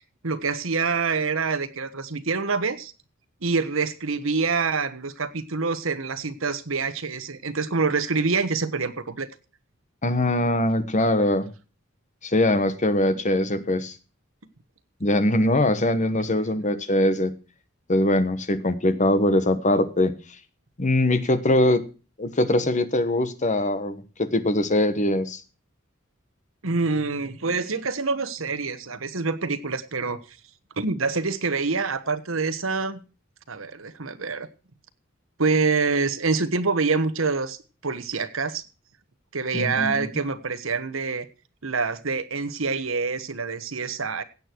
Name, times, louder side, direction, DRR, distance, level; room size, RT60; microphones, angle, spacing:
voice 1, 0.0-2.9 3.4-9.3 26.6-30.2 30.8-33.0 33.5-34.5 35.4-37.6 37.8-38.6 39.3-41.3 41.6-44.2, right 4 dB, 75° right, 12 dB, 1.3 m, -26 dB
voice 2, 10.0-11.5 12.2-13.9 15.0-17.3 17.9-20.1 20.8-21.8 22.2-25.4 39.5-40.1, left 1 dB, 35° left, 12 dB, 1.3 m, -22 dB
16.5 x 8.6 x 4.6 m, 0.34 s
head